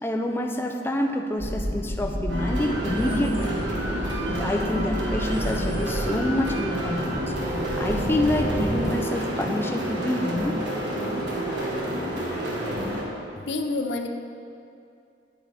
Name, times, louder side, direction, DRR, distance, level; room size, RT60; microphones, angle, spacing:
voice 1, 0.0-3.7 4.3-7.2 7.8-10.6, left 1 dB, 15° left, 2 dB, 0.5 m, -27 dB
sound 1, 1.4-8.9, equal, 55° right, 1.7 m, -32 dB
sound 2, 2.3-13.0, right 1 dB, 85° right, 1.5 m, -29 dB
voice 2, 13.4-14.1, left 3 dB, 75° left, 5 dB, 0.6 m, -28 dB
9.0 x 8.4 x 3.4 m, 2.4 s
head